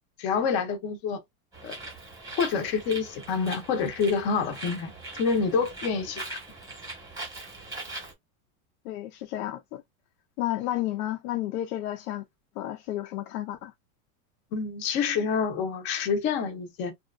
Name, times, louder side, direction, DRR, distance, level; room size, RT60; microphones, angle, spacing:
voice 1, 0.2-1.2 1.6-1.8 2.4-4.9 5.2-6.4 14.5-16.9, left 5 dB, 25° left, 0.6 m, -27 dB
Bird, 1.5-8.1, right 2 dB, 10° right, 0.9 m, -41 dB
voice 2, 8.8-9.8 10.4-12.2 12.6-13.7 16.0-16.1, left 13 dB, 80° left, 0.7 m, -32 dB
2.7 x 2.4 x 2.4 m
supercardioid pair, 165°, 44 cm